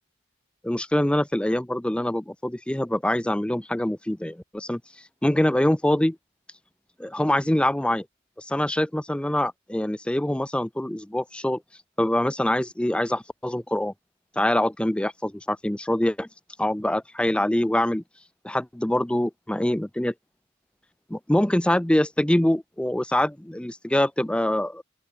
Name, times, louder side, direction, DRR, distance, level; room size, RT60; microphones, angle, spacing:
voice 1, 0.6-4.8 5.2-6.2 7.0-8.1 8.4-11.6 12.0-13.9 14.4-16.3 16.6-18.0 18.4-20.1 21.1-24.8, left 1 dB, 5° left, 0.4 m, -24 dB
open air
head